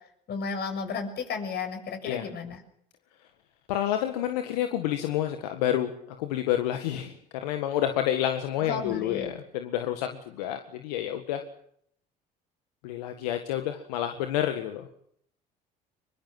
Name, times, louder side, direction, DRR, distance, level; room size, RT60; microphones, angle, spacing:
voice 1, 0.3-2.6 8.6-9.4, left 5 dB, 55° left, 6 dB, 7.0 m, -33 dB
voice 2, 3.7-11.4 12.8-14.9, left 11 dB, 85° left, 6 dB, 1.8 m, -29 dB
23.5 x 22.5 x 7.8 m, 0.68 s
hypercardioid pair, 70°, 20 cm